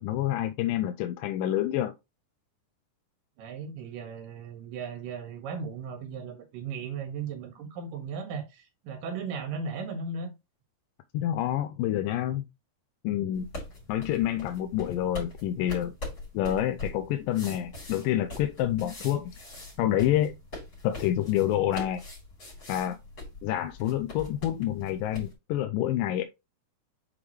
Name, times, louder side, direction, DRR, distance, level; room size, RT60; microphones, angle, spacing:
voice 1, 0.0-1.9 11.1-12.4 13.0-13.5 13.9-15.9 16.3-19.3 19.8-20.3 20.8-22.0 22.7-23.0 23.4-26.2, left 12 dB, 85° left, 2.2 m, -28 dB
voice 2, 3.4-10.3, right 5 dB, 80° right, 3.3 m, -36 dB
sound 1, 13.3-25.3, left 2 dB, 40° left, 4.3 m, -42 dB
7.1 x 4.9 x 3.1 m
omnidirectional pair, 3.9 m